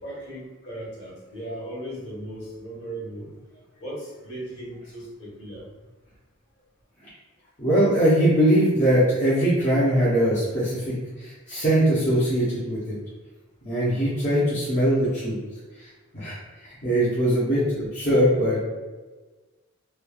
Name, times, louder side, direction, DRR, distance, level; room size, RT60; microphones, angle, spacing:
voice 1, 0.0-3.3 3.8-5.6, right 1 dB, 55° left, -5 dB, 1.2 m, -37 dB
voice 2, 7.6-13.0 13.6-15.4 15.7-18.6, right 1 dB, 35° left, -11 dB, 0.7 m, -22 dB
3.1 x 2.3 x 2.3 m, 1.3 s
head